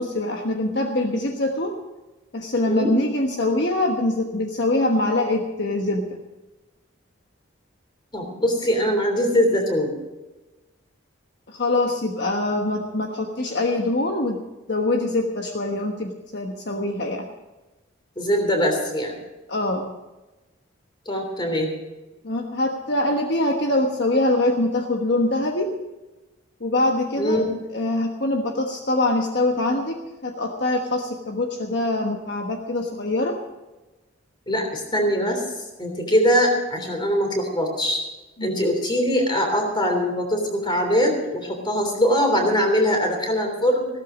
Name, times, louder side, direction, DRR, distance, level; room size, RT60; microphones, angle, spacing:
voice 1, 0.0-1.7 2.3-6.2 11.5-14.4 14.7-17.3 19.5-19.9 22.2-25.7 26.6-27.4 27.7-29.9 30.2-33.4 38.4-38.6, left 2 dB, 55° left, 3 dB, 1.3 m, -24 dB
voice 2, 8.1-9.9 18.2-19.2 21.0-21.7 27.2-27.5 34.5-35.4 35.8-38.0 38.4-43.9, equal, 25° left, 4 dB, 3.2 m, -22 dB
15.5 x 13.5 x 5.1 m, 1.1 s
head